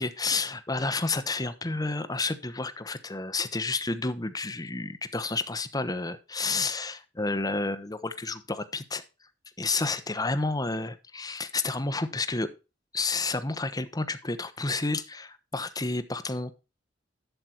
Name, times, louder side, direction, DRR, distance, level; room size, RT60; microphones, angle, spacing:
voice 1, 0.0-9.0 9.6-12.5 12.9-16.6, left 3 dB, 20° left, 10 dB, 1.0 m, -30 dB
11.5 x 6.7 x 4.4 m, 0.30 s
head